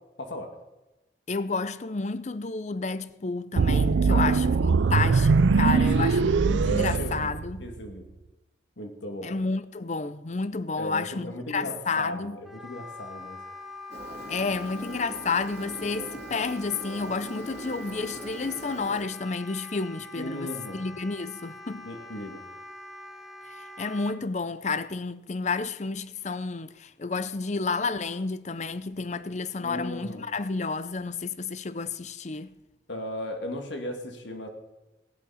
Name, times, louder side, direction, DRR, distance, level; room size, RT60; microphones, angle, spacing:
voice 1, 0.2-0.5 4.1-4.4 5.7-6.2 6.7-7.3 7.6-8.0 8.8-9.3 10.8-13.4 20.2-20.8 21.7-22.4 29.6-30.3 32.9-34.5, left 1 dB, 75° left, 2.1 m, -36 dB
voice 2, 1.3-7.6 9.2-12.4 14.3-21.8 23.6-32.5, left 4 dB, 40° left, 0.6 m, -31 dB
sound 1, 3.6-7.8, right 4 dB, 75° right, 0.4 m, -22 dB
Wind instrument woodwind instrument, 12.4-24.2, left 1 dB, ahead, 1.0 m, -44 dB
Engine, 13.9-19.0, right 1 dB, 35° right, 2.3 m, -42 dB
16.5 x 11.0 x 5.6 m
head